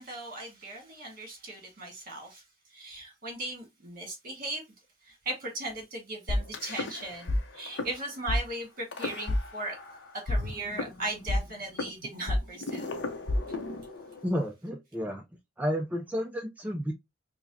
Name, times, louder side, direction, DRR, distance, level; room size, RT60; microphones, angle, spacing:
voice 1, 0.0-2.4 2.7-4.6 5.0-9.8 10.2-13.0, right 2 dB, 50° right, 1.6 m, -38 dB
sound 1, 6.3-7.4 7.7-7.9 8.3-8.4 8.9-9.9 10.3-14.3, left 2 dB, 70° left, 0.6 m, -31 dB
voice 2, 14.2-15.2 15.6-16.9, equal, 10° right, 0.4 m, -31 dB
4.7 x 2.1 x 2.6 m
head